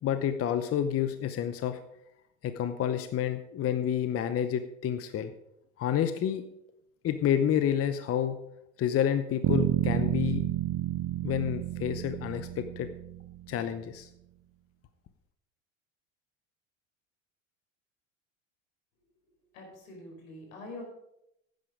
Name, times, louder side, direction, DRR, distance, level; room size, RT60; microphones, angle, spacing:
voice 1, 0.0-1.8 2.4-5.3 5.8-6.4 7.0-8.4 8.8-10.5 11.2-12.9 13.5-14.1, left 10 dB, 35° left, 10 dB, 0.8 m, -29 dB
sound 1, 9.4-13.5, right 14 dB, 35° right, 0.4 m, -30 dB
voice 2, 19.5-20.8, left 2 dB, 80° left, 1 dB, 4.8 m, -44 dB
10.5 x 9.4 x 5.0 m, 0.80 s
hypercardioid pair, 90°, 40 cm